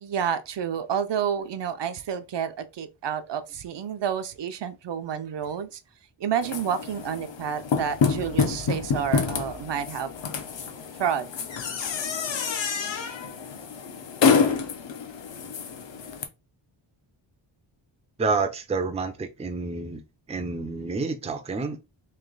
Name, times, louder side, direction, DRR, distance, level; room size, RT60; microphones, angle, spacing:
voice 1, 0.0-5.8 6.2-10.1 11.0-11.3, right 8 dB, 60° right, 0.6 m, -29 dB
sound 1, 6.4-16.2, left 5 dB, 65° left, 0.8 m, -27 dB
voice 2, 18.2-20.0 20.3-21.8, right 4 dB, 15° right, 0.4 m, -28 dB
3.2 x 2.9 x 3.8 m
wide cardioid pair, 180°, 48 cm